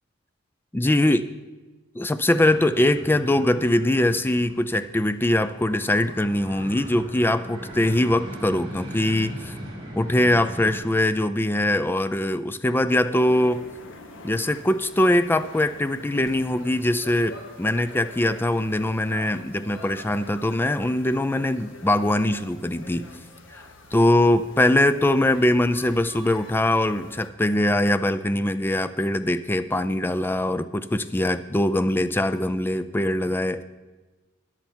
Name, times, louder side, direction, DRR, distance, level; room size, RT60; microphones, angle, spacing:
voice 1, 0.7-1.3 1.9-9.6 10.0-13.6 14.2-23.1 23.5-23.6 23.9-33.6, left 1 dB, 10° left, 12 dB, 0.4 m, -22 dB
sound 1, 2.0-10.8, equal, 25° right, 3.1 m, -39 dB
sound 2, 13.1-27.3, left 2 dB, 65° left, 1.2 m, -45 dB
13.5 x 10.0 x 4.4 m, 1.2 s
head